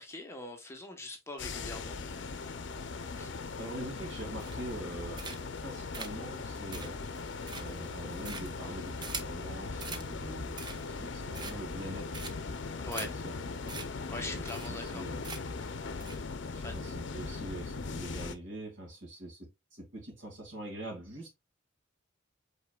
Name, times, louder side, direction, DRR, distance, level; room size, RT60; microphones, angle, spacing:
voice 1, 0.0-2.0 3.2-3.3 12.8-13.1 14.1-15.0 16.6-16.8, left 2 dB, 15° left, 1.1 m, -42 dB
sound 1, 1.4-18.4, left 4 dB, 70° left, 0.6 m, -39 dB
voice 2, 3.6-7.0 7.5-10.5 10.8-12.3 13.0-13.3 13.6-13.8 14.3-14.4 14.7-15.2 16.5-21.3, right 1 dB, 75° right, 2.5 m, -44 dB
sound 2, 4.4-4.8 5.1-5.6 5.9-9.4 9.8-10.1 10.4-11.0 11.3-11.8 12.1-12.5 12.9-13.1 13.4-13.5 13.7-13.9 14.1-14.2 14.5-14.9 15.2-15.6 16.0-16.2, right 4 dB, 25° right, 0.6 m, -43 dB
5.4 x 4.2 x 2.3 m
head